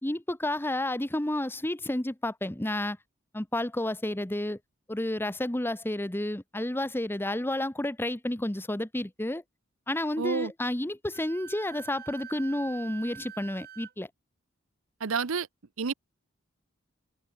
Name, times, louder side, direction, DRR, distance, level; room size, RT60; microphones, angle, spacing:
voice 1, 0.0-3.0 3.3-4.6 4.9-9.4 9.9-14.1, left 1 dB, 10° left, 1.0 m, -31 dB
voice 2, 10.2-10.5 15.0-15.5 15.8-15.9, right 5 dB, 85° right, 0.8 m, -29 dB
Wind instrument woodwind instrument, 11.1-13.9, right 9 dB, 50° right, 4.2 m, -46 dB
head